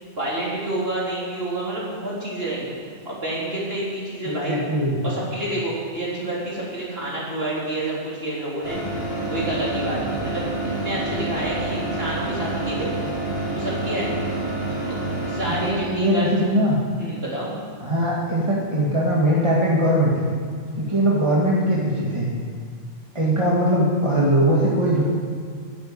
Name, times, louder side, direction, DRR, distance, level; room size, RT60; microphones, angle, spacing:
voice 1, 0.1-2.7 3.0-4.6 5.0-8.8 9.3-12.9 13.5-14.3 14.9-15.0 15.3-16.3 17.0-17.5, right 1 dB, 45° right, -6 dB, 4.2 m, -28 dB
voice 2, 4.3-5.0 15.6-16.8 17.8-20.3 20.8-22.3 23.1-25.0, right 1 dB, 20° right, -5 dB, 1.9 m, -20 dB
sound 1, 8.6-15.7, right 2 dB, 45° left, 2.4 m, -28 dB
11.0 x 9.6 x 8.9 m, 2.1 s
omnidirectional pair, 1.5 m